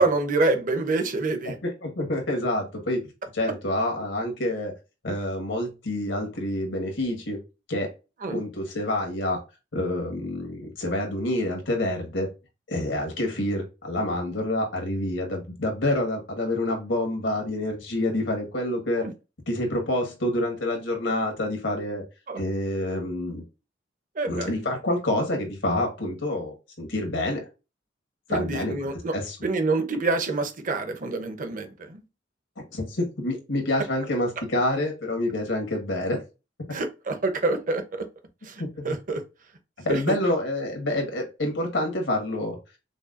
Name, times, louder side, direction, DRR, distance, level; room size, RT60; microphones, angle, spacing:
voice 1, 0.0-1.6 8.2-8.4 19.0-19.1 22.3-22.4 24.2-24.5 28.3-29.1 29.4-32.0 36.7-38.1 38.4-39.2 39.9-40.2, right 3 dB, 45° right, 0.8 m, -26 dB
voice 2, 1.6-3.0 3.3-4.7 5.0-7.4 7.7-7.9 8.3-9.4 9.7-12.3 12.7-19.1 19.5-22.0 22.4-23.4 24.2-27.4 28.3-29.4 32.7-36.2 38.6-38.9 39.8-42.6, left 1 dB, 90° left, 1.6 m, -27 dB
5.2 x 2.3 x 2.5 m
head